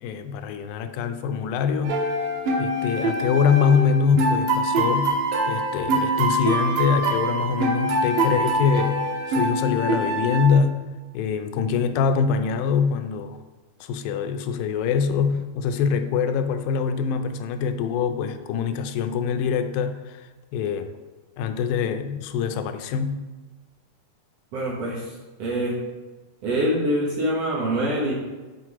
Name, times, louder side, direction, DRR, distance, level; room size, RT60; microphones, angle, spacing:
voice 1, 0.0-2.0 2.6-5.2 5.5-10.8 11.1-13.4 13.8-20.9 21.4-23.2, left 6 dB, 90° left, 8 dB, 2.4 m, -24 dB
sound 1, 1.8-10.5, right 1 dB, 80° right, 2.7 m, -24 dB
voice 2, 24.5-25.8 26.4-28.1, right 1 dB, 55° right, -5 dB, 2.1 m, -25 dB
6.0 x 5.6 x 4.7 m, 1.2 s
omnidirectional pair, 4.0 m